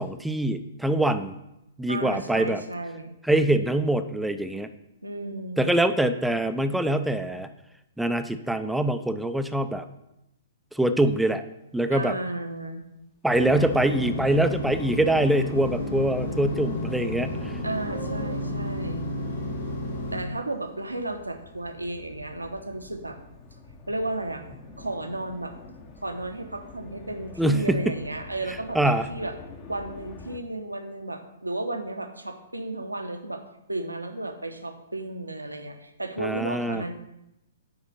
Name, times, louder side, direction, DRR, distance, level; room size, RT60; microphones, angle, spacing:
voice 1, 0.0-1.3 1.8-2.6 3.2-4.7 5.6-7.5 8.0-9.9 10.7-11.4 11.7-12.1 13.2-17.5 27.4-27.9 28.7-29.1 36.2-36.8, right 1 dB, 5° right, 8 dB, 0.4 m, -24 dB
voice 2, 1.9-3.2 5.0-5.8 11.9-12.8 17.6-19.1 20.1-23.2 23.9-24.4 24.8-25.5 26.0-29.3 29.7-33.4 33.7-36.9, right 2 dB, 85° right, 6 dB, 0.9 m, -33 dB
sound 1, 13.3-20.2, left 1 dB, 65° left, 2.2 m, -31 dB
sound 2, 15.6-30.4, left 4 dB, 30° left, 0.9 m, -48 dB
9.8 x 4.0 x 5.5 m, 0.87 s
figure-of-eight pair, 115°, 0 cm